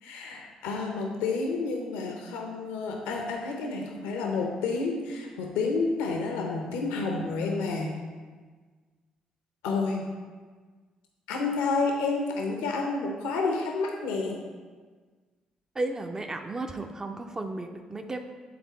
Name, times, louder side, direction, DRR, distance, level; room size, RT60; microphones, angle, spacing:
voice 1, 0.0-7.9 9.6-10.0 11.3-14.4, left 3 dB, 90° left, 1 dB, 0.7 m, -30 dB
voice 2, 15.8-18.2, right 2 dB, 25° right, 5 dB, 0.5 m, -34 dB
8.6 x 3.6 x 4.1 m, 1.5 s
supercardioid pair, 60°, 2 cm